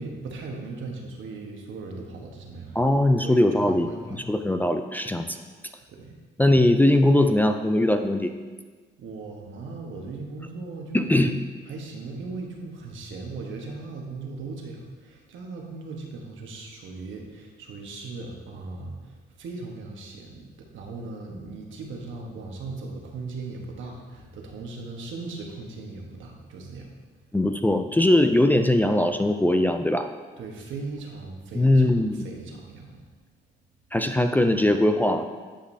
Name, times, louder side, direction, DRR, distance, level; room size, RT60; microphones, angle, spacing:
voice 1, 0.0-2.8 3.2-4.2 5.9-6.1 9.0-11.2 11.7-18.9 19.4-26.9 30.4-31.8 32.2-32.9, right 3 dB, 80° right, 0 dB, 1.2 m, -38 dB
voice 2, 2.8-5.4 6.4-8.3 10.9-11.3 27.3-30.1 31.5-32.2 33.9-35.3, left 1 dB, 10° left, 6 dB, 0.4 m, -21 dB
10.0 x 5.1 x 2.7 m, 1.4 s
cardioid pair, 90°, 20 cm